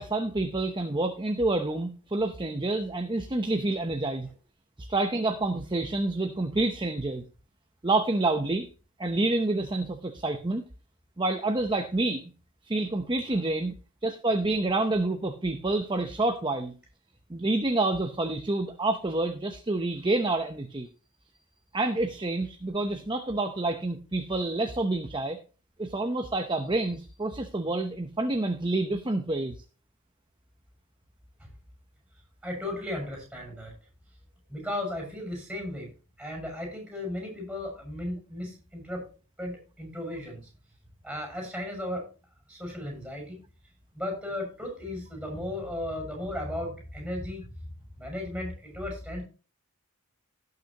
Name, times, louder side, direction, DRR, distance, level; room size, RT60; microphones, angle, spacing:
voice 1, 0.0-4.3 4.8-7.2 7.8-8.7 9.0-10.7 11.2-12.3 12.6-13.7 14.0-16.7 17.3-20.9 21.7-25.4 25.8-29.6, right 2 dB, 20° right, 7 dB, 0.8 m, -28 dB
voice 2, 32.4-33.7 34.5-35.9 36.2-39.0 39.4-40.5 41.0-42.1 42.5-43.4 43.9-47.5 48.0-49.2, left 1 dB, 5° right, 1 dB, 6.4 m, -35 dB
17.0 x 6.7 x 2.9 m, 0.34 s
head